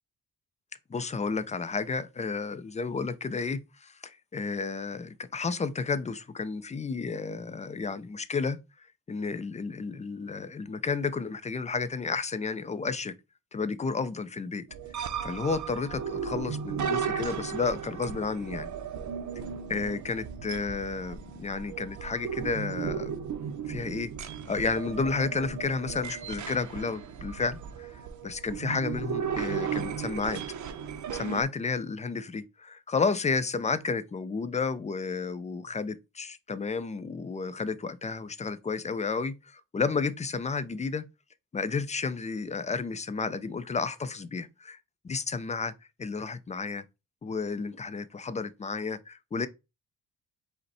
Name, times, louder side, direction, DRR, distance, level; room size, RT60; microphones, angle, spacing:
voice 1, 0.9-8.6 9.1-13.1 13.5-14.6 15.0-18.7 19.7-23.1 23.7-24.1 24.5-30.4 31.1-41.1 41.5-44.8 45.0-45.7 46.0-46.8 47.2-49.5, left 4 dB, 20° left, 0.4 m, -32 dB
sound 1, 14.7-31.4, right 7 dB, 55° right, 0.6 m, -35 dB
5.2 x 2.2 x 4.1 m
cardioid pair, 120°, 36 cm